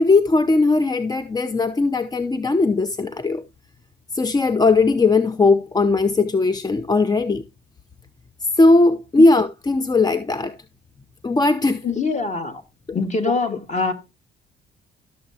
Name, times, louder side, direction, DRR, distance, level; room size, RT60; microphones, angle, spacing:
voice 1, 0.0-3.4 4.1-7.4 8.5-10.6 11.2-11.8, left 3 dB, 20° left, 0.5 m, -18 dB
voice 2, 11.8-12.6 12.9-13.9, left 3 dB, 35° left, 1.6 m, -23 dB
12.0 x 6.7 x 2.7 m
cardioid pair, 90°, 20 cm